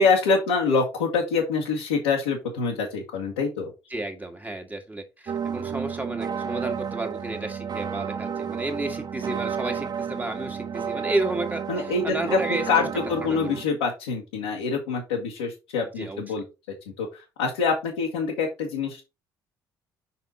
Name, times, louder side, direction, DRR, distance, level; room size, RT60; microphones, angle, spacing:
voice 1, 0.0-3.7 11.7-16.4 17.0-19.0, left 4 dB, 75° left, 1.4 m, -25 dB
voice 2, 3.9-12.9 13.2-13.6 15.8-16.2, right 2 dB, 15° right, 1.9 m, -32 dB
sound 1, 5.3-13.6, right 7 dB, 35° right, 0.5 m, -32 dB
5.8 x 4.2 x 4.3 m
figure-of-eight pair, 50°, 12 cm